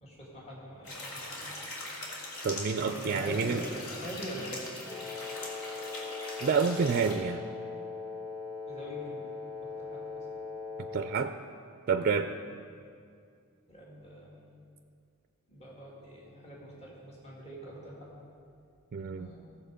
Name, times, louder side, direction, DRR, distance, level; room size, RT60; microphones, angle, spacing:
voice 1, 0.0-1.7 2.8-5.0 8.7-9.2 9.6-10.5 12.2-12.3 13.7-14.6 15.5-18.1 19.2-19.4, equal, 30° left, -5 dB, 2.2 m, -43 dB
sound 1, 0.8-7.1, left 1 dB, 70° left, 2.7 m, -41 dB
voice 2, 2.4-3.6 6.4-7.4 10.9-11.3 11.9-12.3 18.9-19.3, right 5 dB, 45° right, 8 dB, 0.4 m, -28 dB
Wind instrument woodwind instrument, 4.8-11.3, left 4 dB, 15° left, 3.0 m, -40 dB
16.5 x 7.2 x 5.0 m, 2.3 s
head